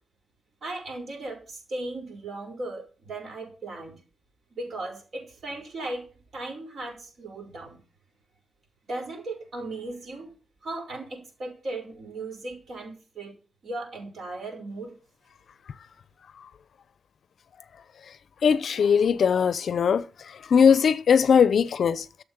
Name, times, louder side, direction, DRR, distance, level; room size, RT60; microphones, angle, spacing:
voice 1, 0.6-3.9 4.5-6.0 6.3-7.8 8.9-10.3 10.6-13.3 13.6-14.9, right 2 dB, 50° right, 5.8 m, -37 dB
voice 2, 18.4-20.0 20.5-22.2, left 7 dB, 55° left, 0.6 m, -20 dB
12.5 x 7.0 x 7.3 m
wide cardioid pair, 170°, 0 cm